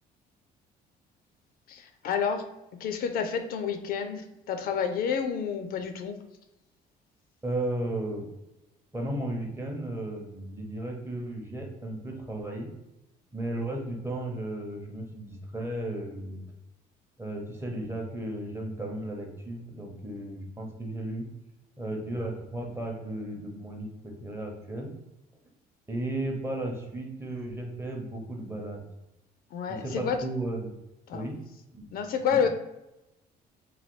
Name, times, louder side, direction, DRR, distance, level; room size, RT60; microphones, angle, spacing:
voice 1, 1.7-2.4 2.8-6.2 29.5-30.2 31.1-31.3 31.9-32.5, left 7 dB, 60° left, 7 dB, 0.4 m, -29 dB
voice 2, 7.4-8.2 8.9-12.7 13.3-16.4 17.2-21.3 21.8-24.9 25.9-28.8 29.7-30.7 31.1-31.4 31.7-31.9 32.2-32.4, right 1 dB, 15° right, 1 dB, 0.7 m, -34 dB
3.1 x 2.2 x 3.0 m, 0.91 s
cardioid pair, 110°, 17 cm